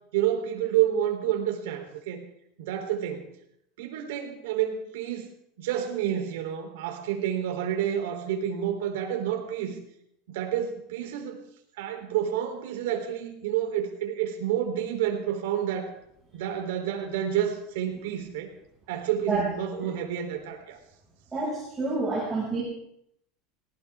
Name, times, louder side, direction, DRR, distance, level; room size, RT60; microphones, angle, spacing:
voice 1, 0.1-2.2 2.6-3.3 3.8-5.3 5.6-9.8 10.3-11.4 11.8-15.9 16.3-18.5 18.9-20.8, right 10 dB, 85° right, 3 dB, 3.6 m, -29 dB
voice 2, 21.3-22.6, right 3 dB, 15° right, -8 dB, 6.3 m, -28 dB
20.0 x 18.5 x 3.7 m, 0.75 s
supercardioid pair, 160°, 0 cm